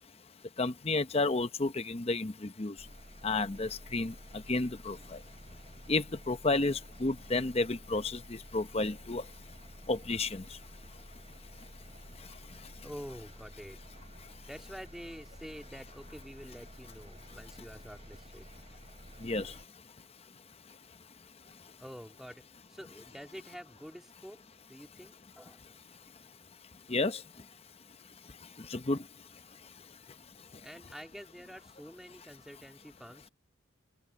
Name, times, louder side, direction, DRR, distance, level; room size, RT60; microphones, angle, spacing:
voice 1, 0.6-2.7 3.2-4.1 4.5-5.0 5.9-9.2 9.9-10.4 19.2-19.5 26.9-27.2 28.7-29.0, left 2 dB, 30° left, 0.8 m, -31 dB
sound 1, 2.8-19.7, equal, 30° right, 7.3 m, -52 dB
voice 2, 12.8-13.8 14.5-18.5 21.8-22.4 22.7-24.4 24.7-25.8 30.6-33.3, equal, ahead, 2.5 m, -48 dB
open air
head